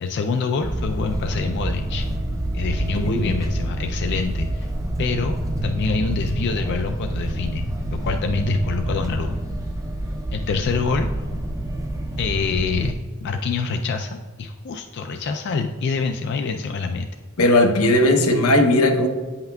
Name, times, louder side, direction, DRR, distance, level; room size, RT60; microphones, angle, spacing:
voice 1, 0.0-2.1 2.5-4.7 5.0-7.6 8.0-9.4 10.3-11.1 12.2-17.1, left 4 dB, 50° left, 4 dB, 0.3 m, -26 dB
sound 1, 0.6-12.9, right 1 dB, 15° right, 0.4 m, -27 dB
voice 2, 2.9-3.3 17.4-19.1, left 1 dB, 85° left, 4 dB, 0.8 m, -17 dB
8.7 x 5.7 x 2.2 m, 1.5 s
head